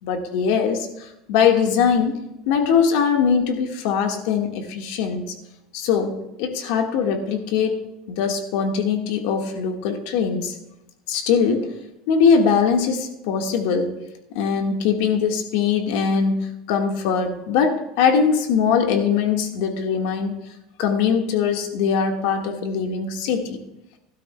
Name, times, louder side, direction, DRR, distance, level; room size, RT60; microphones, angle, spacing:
voice 1, 0.0-2.2 2.5-5.3 5.7-10.5 11.1-11.7 12.1-14.0 14.3-20.4 20.8-23.6, left 6 dB, 75° left, 3 dB, 1.6 m, -21 dB
16.0 x 12.5 x 2.3 m, 0.89 s
cardioid pair, 150°, 0 cm